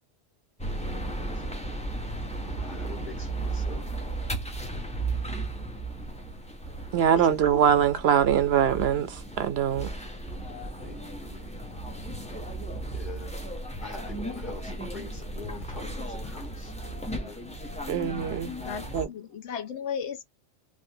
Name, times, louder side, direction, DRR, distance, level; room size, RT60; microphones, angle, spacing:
sound 1, 0.6-19.1, right 2 dB, 10° left, 0.6 m, -35 dB
voice 1, 2.4-3.9 7.1-7.4 10.8-11.6 12.9-13.3 13.8-17.5, left 4 dB, 45° left, 1.8 m, -44 dB
voice 2, 6.9-9.9 17.9-18.5 18.9-19.1, right 9 dB, 70° right, 0.8 m, -23 dB
voice 3, 18.6-20.2, left 7 dB, 80° left, 1.1 m, -35 dB
3.2 x 2.6 x 2.7 m
omnidirectional pair, 1.1 m